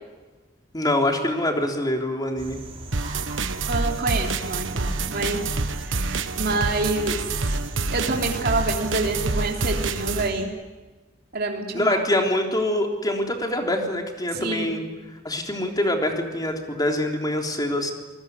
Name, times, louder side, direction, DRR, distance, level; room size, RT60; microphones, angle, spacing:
voice 1, 0.7-2.6 11.7-14.8 15.2-17.9, left 1 dB, 20° left, 2 dB, 3.6 m, -24 dB
sound 1, 2.4-10.4, right 1 dB, 30° right, 4.3 m, -40 dB
sound 2, 2.9-10.3, right 3 dB, 75° right, 1.3 m, -27 dB
voice 2, 3.7-5.5 5.8-7.6 7.9-10.5 11.3-12.0 14.3-14.8, right 2 dB, 55° right, 1 dB, 3.4 m, -27 dB
28.0 x 19.5 x 9.7 m, 1.2 s
head